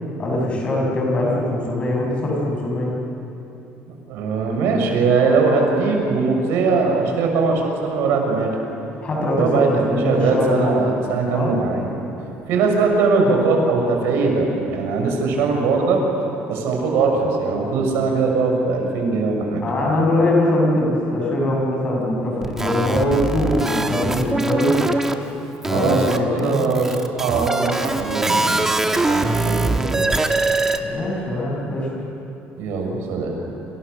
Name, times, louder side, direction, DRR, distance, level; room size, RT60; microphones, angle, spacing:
voice 1, 0.2-2.9 9.0-10.9 11.3-11.6 19.6-24.8 25.7-26.7 30.8-31.9, left 1 dB, 30° left, -1 dB, 6.4 m, -22 dB
voice 2, 4.1-8.6 9.4-11.9 12.5-16.0 16.5-19.6 25.7-28.6 28.9-30.1 32.6-33.3, right 4 dB, 75° right, 2 dB, 6.3 m, -20 dB
sound 1, 22.4-25.1 25.6-30.8, right 2 dB, 10° right, 1.2 m, -22 dB
28.5 x 28.0 x 6.9 m, 3.0 s
cardioid pair, 175°, 4 cm